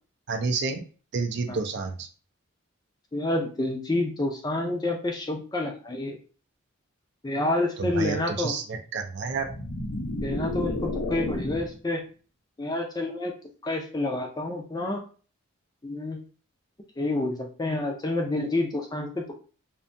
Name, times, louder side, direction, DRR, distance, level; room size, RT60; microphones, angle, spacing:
voice 1, 0.3-0.8 1.1-2.1 7.8-9.6, right 4 dB, 55° right, 4 dB, 0.4 m, -29 dB
voice 2, 3.1-6.2 7.2-8.5 10.2-12.0 12.6-13.3 13.6-15.0 15.8-16.2 17.0-19.4, left 2 dB, 20° left, 2 dB, 0.4 m, -28 dB
sound 1, 9.3-11.8, left 2 dB, 85° left, 0.5 m, -31 dB
2.6 x 2.1 x 2.5 m, 0.38 s
head